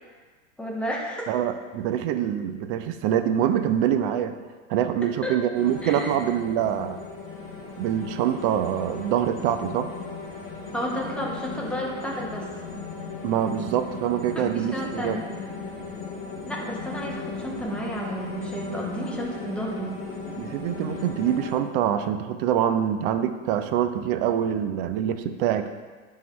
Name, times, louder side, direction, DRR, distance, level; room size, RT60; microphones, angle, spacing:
voice 1, 0.6-1.3 5.2-5.4 5.8-6.2 10.7-12.5 14.3-15.2 16.5-20.0, equal, 5° left, -3 dB, 1.0 m, -32 dB
voice 2, 1.3-4.4 4.7-7.0 7.8-9.9 13.2-15.2 20.4-25.7, right 10 dB, 45° right, 9 dB, 0.5 m, -25 dB
sound 1, 5.5-21.5, left 4 dB, 25° left, 2.1 m, -37 dB
10.5 x 3.8 x 3.1 m, 1.4 s
hypercardioid pair, 125°, 39 cm